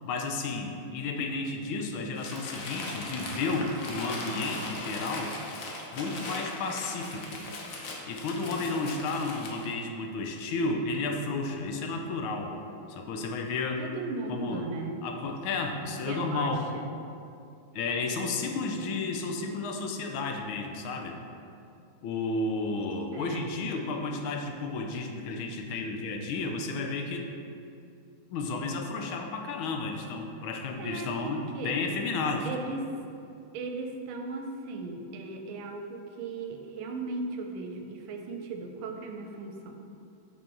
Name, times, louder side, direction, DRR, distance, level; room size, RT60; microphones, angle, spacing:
voice 1, 0.0-5.4 5.9-7.4 8.1-12.6 12.9-13.8 14.3-14.6 15.0-16.7 17.7-21.2 22.0-27.3 28.3-32.5, left 3 dB, 80° left, 3 dB, 1.4 m, -32 dB
Crumpling crinkling, 2.2-9.8, left 2 dB, 60° left, 0.9 m, -39 dB
voice 2, 13.8-15.1 16.0-16.9 23.1-23.5 30.8-31.8 32.4-32.9 33.5-39.8, right 3 dB, 85° right, 4 dB, 1.5 m, -37 dB
6.0 x 4.5 x 4.5 m, 2.5 s
omnidirectional pair, 2.3 m